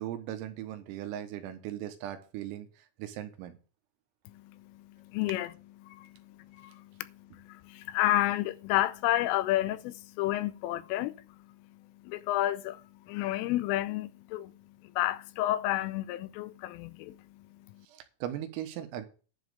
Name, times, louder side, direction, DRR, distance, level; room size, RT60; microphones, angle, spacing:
voice 1, 0.0-2.7 3.0-3.6 17.9-19.1, right 12 dB, 85° right, 4.0 m, -38 dB
voice 2, 4.3-5.5 5.8-11.5 12.0-14.5 14.8-17.9, left 14 dB, 85° left, 3.2 m, -31 dB
11.0 x 5.2 x 7.8 m
omnidirectional pair, 5.9 m